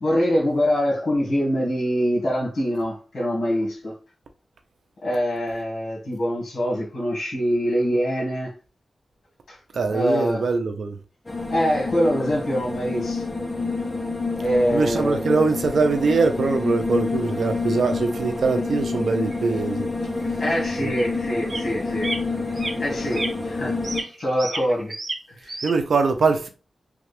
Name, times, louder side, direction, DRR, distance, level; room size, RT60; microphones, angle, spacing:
voice 1, 0.0-3.9 5.0-8.5 9.5-9.6 9.9-10.4 11.5-13.2 14.4-15.2 20.2-22.1 22.5-24.9 25.3-25.6, equal, 70° left, 1.4 m, -24 dB
voice 2, 9.7-11.0 14.7-19.9 20.8-20.9 25.6-26.5, right 4 dB, 75° right, 0.6 m, -22 dB
sound 1, 11.3-24.0, left 3 dB, 25° left, 0.8 m, -28 dB
sound 2, 19.3-19.4 20.2-20.3 21.0-21.1 21.5-21.8 22.0-22.2 22.5-22.7 23.1-23.3 23.8-25.2 25.5-25.7, right 2 dB, 35° right, 0.8 m, -31 dB
3.3 x 2.4 x 3.3 m
cardioid pair, 70°, 0 cm